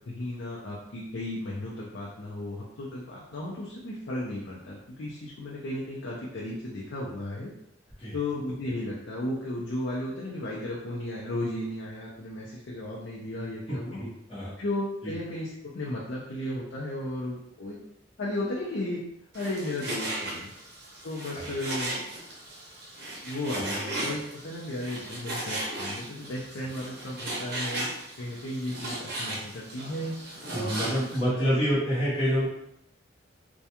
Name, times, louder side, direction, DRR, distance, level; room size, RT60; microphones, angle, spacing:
voice 1, 0.1-7.5 8.1-14.0 14.6-17.8 18.2-19.0 19.3-20.5 21.0-21.9 23.2-27.9 28.2-30.1 30.5-30.8 31.3-31.8, left 1 dB, 70° left, -5 dB, 0.5 m, -34 dB
voice 2, 13.9-14.5 15.0-15.1 21.3-21.6 23.6-23.7 30.5-32.5, equal, 30° left, -11 dB, 0.9 m, -27 dB
Frying (food), 19.3-31.2, right 1 dB, 55° right, 0.7 m, -36 dB
2.3 x 2.2 x 2.8 m, 0.78 s
head